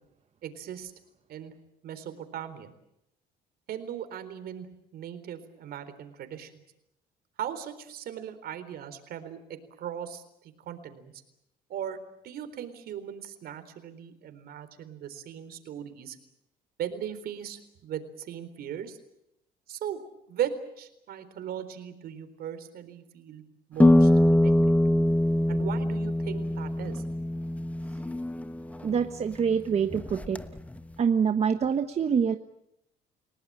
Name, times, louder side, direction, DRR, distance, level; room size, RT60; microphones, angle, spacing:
voice 1, 0.4-0.9 1.3-1.5 1.8-2.7 3.7-4.7 4.9-6.5 7.4-11.1 11.7-12.0 12.2-16.2 16.8-19.0 19.7-20.0 20.3-23.4 23.7-24.5 24.9-25.0 25.5-27.0, right 9 dB, 65° right, 10 dB, 4.0 m, -38 dB
sound 1, 23.8-29.4 29.9-30.8, left 1 dB, 10° left, 1.2 m, -23 dB
voice 2, 28.8-30.4 31.0-32.3, right 7 dB, 40° right, 7 dB, 1.2 m, -25 dB
29.5 x 18.0 x 8.7 m, 0.82 s
cardioid pair, 110°, 17 cm